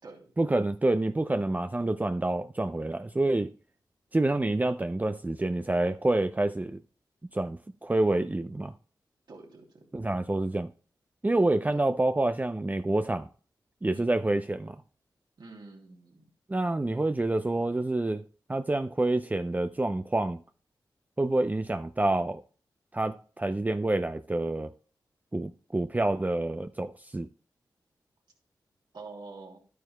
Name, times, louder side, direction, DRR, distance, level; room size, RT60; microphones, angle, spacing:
voice 1, 0.4-3.5 4.1-6.8 7.3-8.7 9.9-10.7 11.2-13.3 13.8-14.8 16.5-18.2 18.5-20.4 21.2-22.4 22.9-24.7 25.3-27.3, right 2 dB, 20° right, 0.5 m, -27 dB
voice 2, 9.3-9.8 11.6-11.8 13.9-14.1 15.4-16.3 28.9-29.6, right 3 dB, 65° right, 2.8 m, -47 dB
11.5 x 9.3 x 2.2 m
cardioid pair, 50°, 8 cm